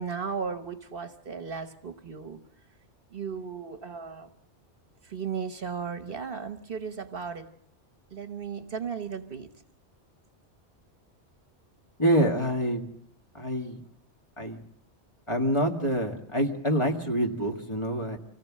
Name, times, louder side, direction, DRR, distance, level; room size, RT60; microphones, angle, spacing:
voice 1, 0.0-2.4 3.1-4.3 5.0-7.5 8.1-9.5, right 6 dB, 55° right, 9 dB, 1.2 m, -35 dB
voice 2, 12.0-12.8 13.3-13.8 14.4-14.6 15.3-18.2, equal, 25° left, 2 dB, 2.0 m, -26 dB
25.5 x 17.0 x 7.5 m, 0.73 s
omnidirectional pair, 1.2 m